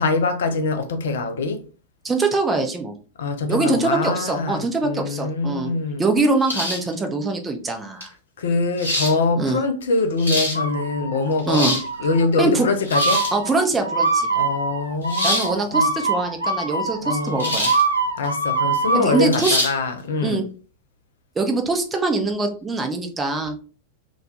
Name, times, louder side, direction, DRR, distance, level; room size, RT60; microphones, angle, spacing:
voice 1, 0.0-1.6 3.2-6.0 8.4-11.7 12.0-13.3 14.3-15.9 17.0-17.6 18.2-20.4, left 3 dB, 60° left, 0.3 m, -23 dB
voice 2, 2.0-3.0 3.5-5.7 6.0-8.1 9.4-9.6 11.5-11.8 12.4-12.7 13.3-14.3 15.2-17.7 18.9-19.6 20.2-20.4 21.4-23.6, right 3 dB, 15° right, 0.5 m, -23 dB
sound 1, 6.5-6.9 8.0-8.1 8.8-9.1 10.0-10.6 11.3-11.9 12.8-13.4 15.1-15.5 17.4-17.8 18.2-18.3 19.3-19.7, left 1 dB, 80° left, 0.8 m, -24 dB
sound 2, 10.5-11.3 11.7-12.2 12.9-19.2, right 3 dB, 85° right, 0.4 m, -24 dB
2.2 x 2.1 x 2.8 m
figure-of-eight pair, 90°, 0 cm